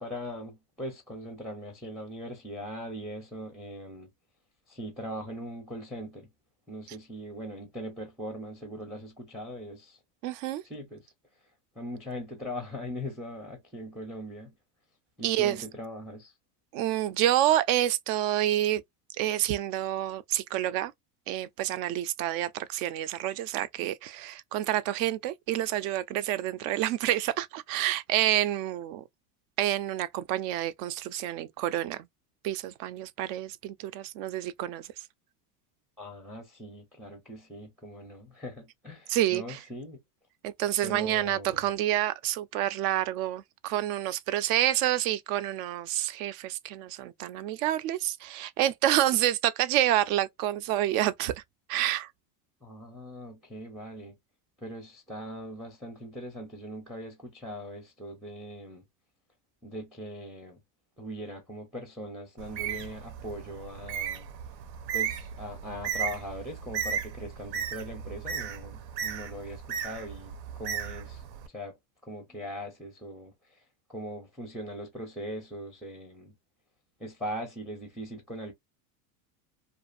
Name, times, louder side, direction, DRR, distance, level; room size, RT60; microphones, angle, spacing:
voice 1, 0.0-4.1 4.7-6.3 6.7-10.0 10.6-11.1 11.8-14.5 15.2-16.3 36.0-40.0 40.8-41.6 52.6-54.1 54.6-58.8 59.6-60.6 61.0-64.2 64.9-71.2 71.5-71.8 72.1-73.6 73.9-76.3 77.0-78.5, equal, ahead, 0.5 m, -40 dB
voice 2, 10.2-10.6 15.2-15.6 16.7-18.8 19.2-20.9 21.3-29.0 29.6-32.1 32.4-34.9 39.1-39.6 40.4-51.3 51.7-52.1, right 13 dB, 55° right, 0.5 m, -28 dB
Bird, 62.4-71.5, right 8 dB, 85° right, 0.8 m, -35 dB
2.5 x 2.5 x 2.4 m
supercardioid pair, 140°, 49 cm